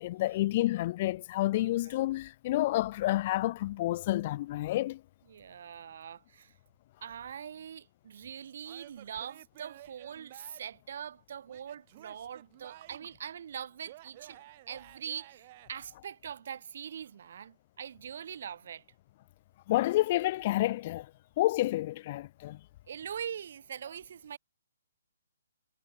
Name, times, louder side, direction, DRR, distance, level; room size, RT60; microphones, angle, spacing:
voice 1, 0.0-5.0 19.7-21.1 21.4-22.6, left 16 dB, 35° left, 0.4 m, -29 dB
voice 2, 5.3-6.5 7.0-14.4 14.7-18.8 22.9-24.4, right 8 dB, 55° right, 1.3 m, -42 dB
Male speech man speaking / Yell / Laughter, 8.6-10.8 11.5-13.2 13.8-15.7, right 17 dB, 35° right, 3.8 m, -53 dB
hypercardioid pair, 150°, 0 cm